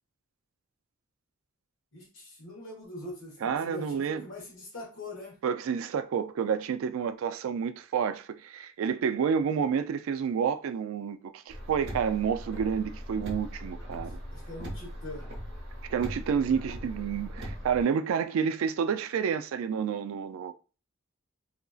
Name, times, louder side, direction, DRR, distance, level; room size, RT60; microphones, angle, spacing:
voice 1, 1.9-5.4 14.0-15.3, left 1 dB, 70° left, 1.2 m, -43 dB
voice 2, 3.4-4.2 5.4-14.2 15.9-20.5, right 7 dB, 80° right, 0.3 m, -29 dB
Car, 11.5-17.8, equal, 55° right, 0.9 m, -40 dB
2.8 x 2.5 x 2.3 m
head